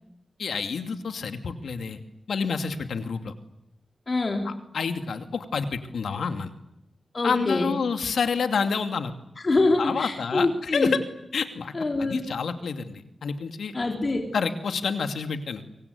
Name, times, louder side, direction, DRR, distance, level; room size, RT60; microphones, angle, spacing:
voice 1, 0.4-2.0 2.3-3.3 4.4-6.5 7.2-9.1 9.8-11.0 11.3-11.7 12.0-14.0 14.3-15.6, left 5 dB, 90° left, 7 dB, 2.5 m, -28 dB
voice 2, 4.1-4.5 7.1-7.7 9.4-11.0 11.7-12.2 13.7-14.3, left 2 dB, 35° left, 2 dB, 3.9 m, -25 dB
25.0 x 24.0 x 9.6 m, 0.80 s
wide cardioid pair, 130°, 0 cm